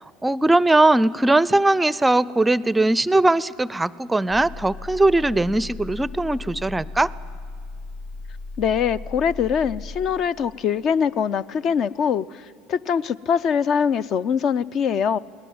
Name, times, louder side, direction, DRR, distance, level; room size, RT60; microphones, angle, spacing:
voice 1, 0.2-7.1, right 2 dB, 10° right, 20 dB, 0.5 m, -19 dB
sound 1, 4.3-10.1, left 3 dB, 85° left, 7.3 m, -36 dB
voice 2, 8.6-12.2 12.7-15.2, left 7 dB, 50° left, 17 dB, 0.5 m, -22 dB
21.0 x 19.0 x 9.5 m, 2.1 s
hypercardioid pair, 75°, 0 cm